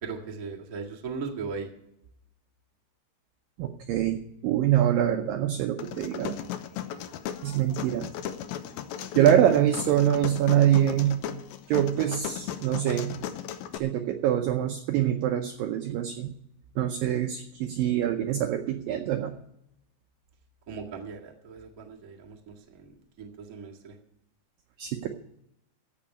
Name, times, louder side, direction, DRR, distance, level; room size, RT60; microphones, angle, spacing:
voice 1, 0.0-1.7 9.1-9.3 20.7-22.9 23.2-24.0, right 5 dB, 55° right, -1 dB, 0.9 m, -38 dB
voice 2, 3.6-6.4 7.4-8.1 9.2-11.2 11.7-13.3 13.8-16.3 16.8-19.3 24.8-25.1, right 11 dB, 80° right, 5 dB, 2.0 m, -25 dB
sound 1, 5.8-13.8, left 10 dB, 80° left, 2.2 m, -36 dB
16.0 x 5.4 x 9.9 m, 0.80 s
omnidirectional pair, 4.9 m